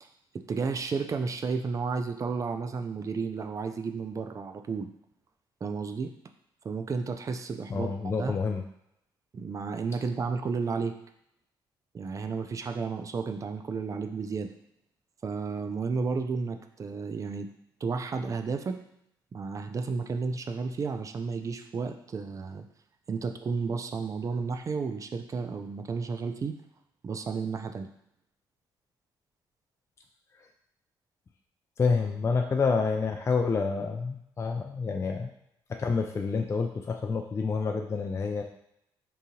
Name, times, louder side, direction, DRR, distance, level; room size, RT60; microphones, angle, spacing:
voice 1, 0.5-4.9 5.6-6.1 6.6-8.4 9.3-10.9 11.9-14.5 15.2-17.5 17.8-18.8 19.3-22.7 23.1-26.6 27.0-27.9, right 4 dB, 35° right, 7 dB, 0.4 m, -32 dB
voice 2, 7.7-8.6 31.8-35.3 35.8-38.4, left 4 dB, 30° left, 2 dB, 0.4 m, -28 dB
3.8 x 2.7 x 2.7 m, 0.77 s
cardioid pair, 75°, 9 cm